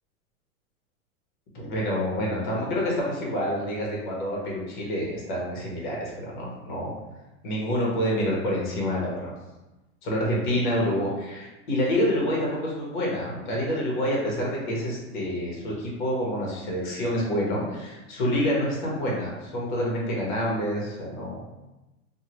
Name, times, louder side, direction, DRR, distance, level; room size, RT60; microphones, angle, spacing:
voice 1, 1.5-6.9 7.4-9.3 10.0-21.4, equal, 35° left, -4 dB, 0.8 m, -27 dB
2.9 x 2.2 x 2.8 m, 1.0 s
supercardioid pair, 170°, 42 cm